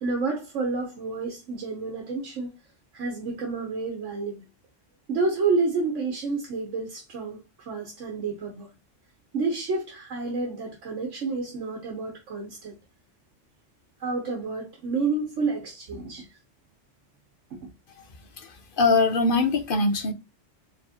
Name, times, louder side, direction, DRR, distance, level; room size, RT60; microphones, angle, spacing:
voice 1, 0.0-2.5 2.9-4.4 5.1-8.7 9.3-12.8 14.0-16.3 17.5-17.7, right 3 dB, 80° right, 1.3 m, -29 dB
voice 2, 18.4-20.1, left 3 dB, 50° left, 0.9 m, -22 dB
4.5 x 3.6 x 2.9 m
omnidirectional pair, 1.3 m